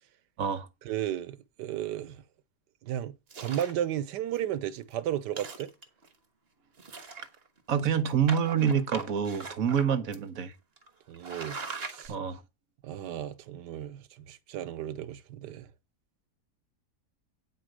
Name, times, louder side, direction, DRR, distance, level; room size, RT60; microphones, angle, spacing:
voice 1, 0.8-2.2 2.8-5.7 11.1-12.1 12.8-15.7, right 11 dB, 90° right, 1.4 m, -34 dB
sound 1, 3.3-3.8 4.4-4.5 4.8-4.9 5.3-6.1 6.8-7.6 8.3-9.9 10.1-10.2 10.8-10.9 11.1-12.1, right 4 dB, 40° right, 1.4 m, -40 dB
voice 2, 7.7-10.5 12.1-12.4, right 7 dB, 60° right, 1.3 m, -27 dB
9.1 x 4.9 x 6.3 m
omnidirectional pair, 1.8 m